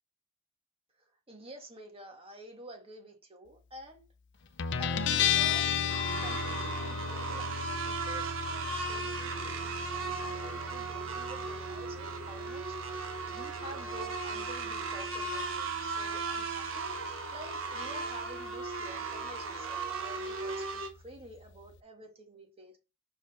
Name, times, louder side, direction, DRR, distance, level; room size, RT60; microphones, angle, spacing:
voice 1, 1.3-4.0 4.8-5.9 6.2-22.8, right 1 dB, 30° right, 1.9 m, -49 dB
Guitar, 4.6-21.8, left 7 dB, 60° left, 0.6 m, -37 dB
sound 1, 5.9-20.9, right 4 dB, 80° right, 1.5 m, -36 dB
6.0 x 5.0 x 4.4 m
head